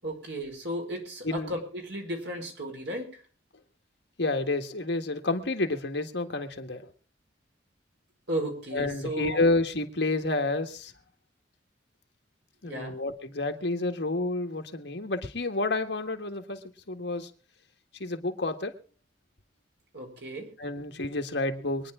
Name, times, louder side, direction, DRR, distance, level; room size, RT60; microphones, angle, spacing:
voice 1, 0.0-3.2 8.3-9.4 12.6-13.0 19.9-20.5, right 1 dB, 65° right, 1 dB, 4.8 m, -35 dB
voice 2, 4.2-6.9 8.7-10.9 12.6-16.6 16.9-17.3 18.0-18.7 20.6-21.9, left 2 dB, 70° left, 5 dB, 1.6 m, -29 dB
24.0 x 10.0 x 3.7 m, 0.38 s
head